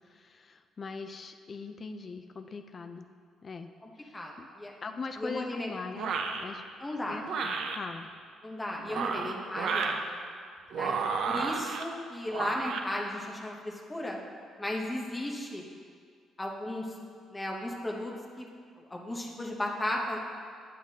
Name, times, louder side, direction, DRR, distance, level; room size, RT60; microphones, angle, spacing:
voice 1, 0.0-3.1 3.4-3.7 4.0-4.5 4.8-6.7 7.1-8.1, left 4 dB, 30° left, 7 dB, 0.4 m, -41 dB
voice 2, 3.8-4.7 5.2-5.7 6.8-7.2 8.4-10.3 10.8-14.2 14.6-15.6 16.4-17.0 17.3-20.2, left 1 dB, 10° left, -1 dB, 0.8 m, -35 dB
sound 1, 6.0-6.4 7.2-7.8 8.8-10.0 10.7-11.8 12.3-12.8, right 5 dB, 60° right, 0.5 m, -31 dB
9.1 x 8.0 x 2.8 m, 2.1 s
cardioid pair, 160°, 0 cm